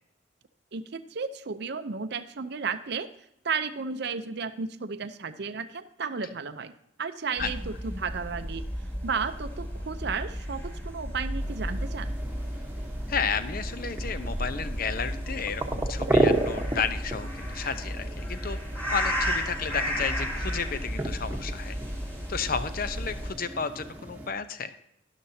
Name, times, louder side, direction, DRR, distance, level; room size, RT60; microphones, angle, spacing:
voice 1, 0.7-3.1 3.4-6.7 7.0-8.6 9.0-12.1, right 5 dB, 55° right, 10 dB, 0.6 m, -33 dB
sound 1, 7.4-23.3, equal, 10° left, 2.2 m, -33 dB
sound 2, 11.4-24.3, right 1 dB, 10° right, 1.1 m, -33 dB
voice 2, 13.1-18.6 18.9-21.8 22.3-24.8, left 6 dB, 50° left, 12 dB, 0.7 m, -32 dB
12.0 x 11.5 x 2.8 m, 0.81 s
head